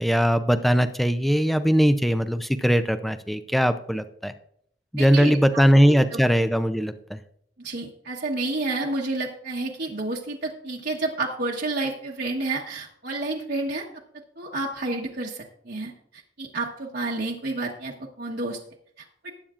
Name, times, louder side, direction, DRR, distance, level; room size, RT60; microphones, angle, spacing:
voice 1, 0.0-4.3 4.9-7.2, equal, ahead, 9 dB, 0.5 m, -20 dB
voice 2, 4.9-5.6 6.1-6.2 7.6-13.8 14.4-15.9 16.4-18.6 19.0-19.3, right 2 dB, 60° right, -3 dB, 1.3 m, -30 dB
19.5 x 8.6 x 2.5 m, 0.67 s
head